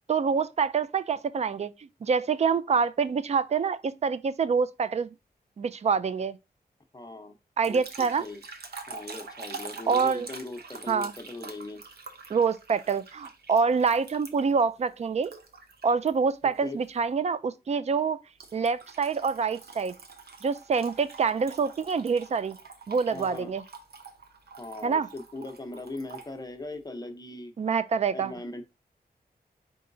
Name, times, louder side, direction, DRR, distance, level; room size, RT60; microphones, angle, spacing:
voice 1, 0.1-5.1 5.6-6.4 7.6-8.2 9.9-10.3 10.9-11.1 12.3-15.3 15.8-18.2 18.5-20.0 20.4-22.6 22.9-23.6 24.8-25.1 27.6-28.3, right 5 dB, 40° right, 0.4 m, -26 dB
voice 2, 6.9-7.4 7.7-8.4 8.9-11.8 16.4-16.8 23.1-23.5 24.6-27.5 28.1-28.6, left 2 dB, 25° left, 0.7 m, -40 dB
sound 1, 7.6-14.6 15.2-16.1 16.5-16.8 18.4-26.3, right 4 dB, 75° right, 0.7 m, -45 dB
4.7 x 4.2 x 2.6 m
wide cardioid pair, 110°, 16 cm